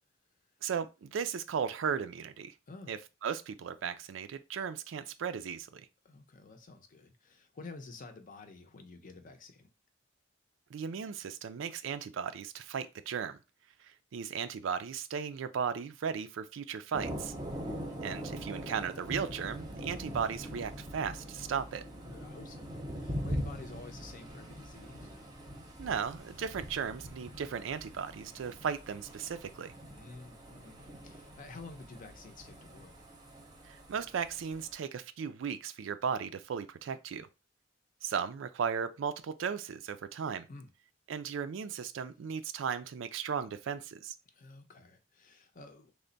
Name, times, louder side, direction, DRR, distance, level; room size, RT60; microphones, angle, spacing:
voice 1, 0.6-2.5 2.9-5.8 10.7-13.4 14.1-17.3 18.0-21.8 25.8-29.7 33.7-37.3 38.0-40.5 41.1-44.1, right 7 dB, 80° right, 0.4 m, -36 dB
voice 2, 6.0-9.7 22.0-25.1 30.0-32.9 40.5-40.7 44.3-45.9, left 3 dB, 45° left, 0.6 m, -50 dB
Thunder, 16.9-34.7, equal, 20° right, 0.7 m, -43 dB
3.3 x 2.1 x 3.8 m
head